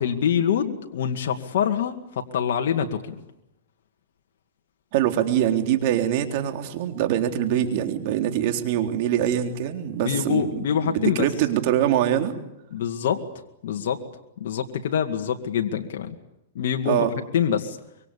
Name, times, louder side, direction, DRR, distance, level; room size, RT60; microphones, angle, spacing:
voice 1, 0.0-3.2 10.0-11.3 12.7-13.2 13.6-14.0 14.4-16.2 16.6-17.1 17.3-17.8, left 8 dB, 70° left, 3 dB, 2.2 m, -25 dB
voice 2, 4.9-12.3 16.9-17.1, right 11 dB, 50° right, 5 dB, 3.6 m, -23 dB
25.0 x 24.0 x 8.5 m, 0.87 s
hypercardioid pair, 140°, 0 cm